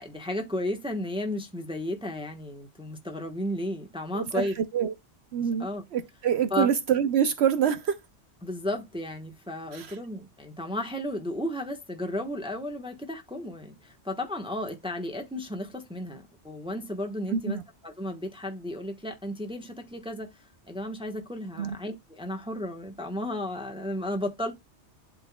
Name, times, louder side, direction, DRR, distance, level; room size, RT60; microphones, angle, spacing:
voice 1, 0.0-4.5 5.4-5.8 6.5-6.7 8.4-17.6 17.8-20.3 20.7-24.5, left 1 dB, 5° right, 1.1 m, -33 dB
voice 2, 4.1-4.9 5.3-8.0 9.7-10.0 17.3-17.6 21.6-21.8, right 8 dB, 70° right, 0.9 m, -26 dB
11.5 x 3.9 x 2.2 m
omnidirectional pair, 1.2 m